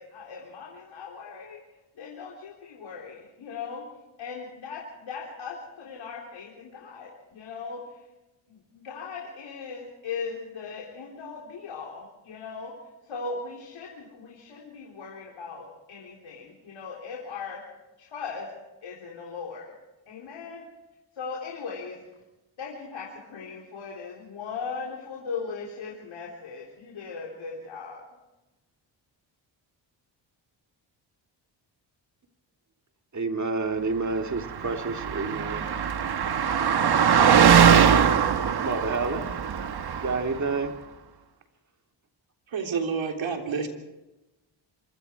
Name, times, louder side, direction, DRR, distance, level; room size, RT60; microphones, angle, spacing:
voice 1, 0.0-1.6 2.0-3.8 4.2-8.0 8.5-12.8 13.0-17.6 18.0-18.5 18.8-19.7 20.1-20.7 21.1-22.0 22.6-28.0, left 5 dB, 75° left, 4.0 m, -38 dB
voice 2, 33.1-35.7 38.6-39.3 40.0-40.7, right 3 dB, 35° right, 2.5 m, -29 dB
Car passing by, 34.4-40.4, right 8 dB, 55° right, 1.4 m, -21 dB
voice 3, 42.5-43.7, right 5 dB, 70° right, 3.6 m, -29 dB
26.0 x 23.0 x 4.7 m
cardioid pair, 70°, 48 cm